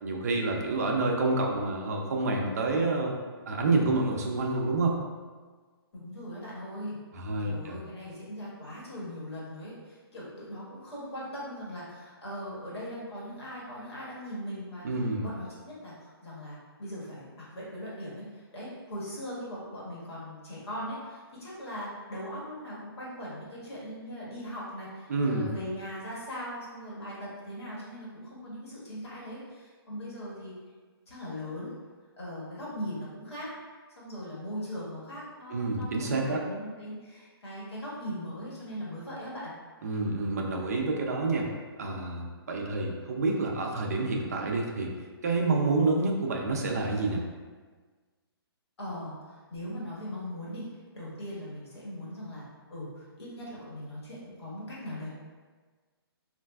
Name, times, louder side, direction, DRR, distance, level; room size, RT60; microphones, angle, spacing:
voice 1, 0.0-3.1 3.5-5.0 7.1-7.8 14.8-15.3 25.1-25.5 35.5-36.4 39.8-41.5 41.8-44.9 45.2-47.2, right 3 dB, 40° right, 0 dB, 0.4 m, -28 dB
voice 2, 5.9-7.0 7.4-14.9 15.2-30.5 31.1-31.7 32.2-33.5 34.0-39.5 48.8-50.7 50.9-52.4 52.7-55.1, equal, 85° left, -7 dB, 1.4 m, -40 dB
3.2 x 2.5 x 2.3 m, 1.4 s
hypercardioid pair, 170°, 13 cm